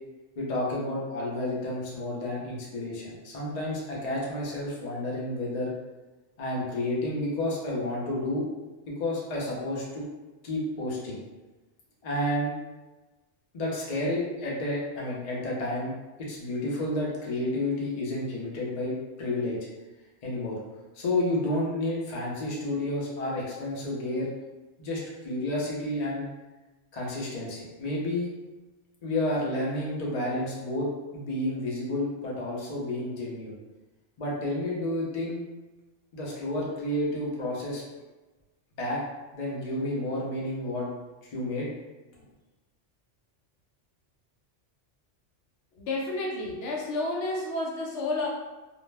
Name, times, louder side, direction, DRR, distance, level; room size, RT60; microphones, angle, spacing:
voice 1, 0.4-5.7 6.4-8.4 8.9-10.0 10.4-11.2 12.0-12.5 13.5-15.9 16.2-18.9 19.2-19.6 20.2-20.6 20.9-24.3 24.8-26.3 26.9-28.3 29.0-30.9 31.1-33.5 34.2-35.4 36.1-37.8 38.8-39.0 39.3-40.9 41.2-41.7, left 1 dB, 40° left, -4 dB, 0.7 m, -30 dB
voice 2, 45.8-48.3, left 2 dB, 80° left, -1 dB, 0.9 m, -30 dB
2.4 x 2.1 x 3.2 m, 1.1 s
omnidirectional pair, 1.2 m